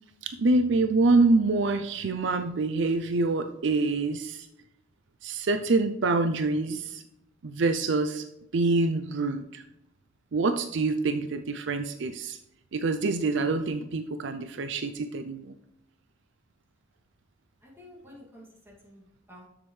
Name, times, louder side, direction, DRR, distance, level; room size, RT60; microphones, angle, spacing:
voice 1, 0.2-4.5 5.2-7.0 7.4-8.3 8.5-9.6 10.3-12.4 12.7-15.5, right 3 dB, 65° right, 8 dB, 0.5 m, -26 dB
voice 2, 17.6-19.5, left 1 dB, 10° right, -4 dB, 2.4 m, -51 dB
7.3 x 7.1 x 3.2 m, 0.85 s
head